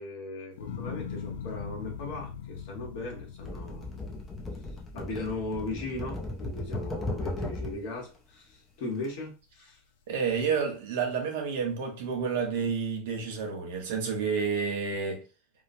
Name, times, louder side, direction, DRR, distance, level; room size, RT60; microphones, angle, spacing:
voice 1, 0.0-4.0 4.9-9.8, left 2 dB, 50° left, 1.1 m, -38 dB
sound 1, 0.6-6.9 7.3-7.9, left 7 dB, 90° left, 0.3 m, -41 dB
sound 2, 3.4-7.9 8.9-9.1, left 2 dB, 10° left, 0.4 m, -36 dB
voice 2, 10.1-15.2, right 5 dB, 65° right, 0.9 m, -30 dB
3.0 x 2.0 x 2.6 m
supercardioid pair, 175°, 0 cm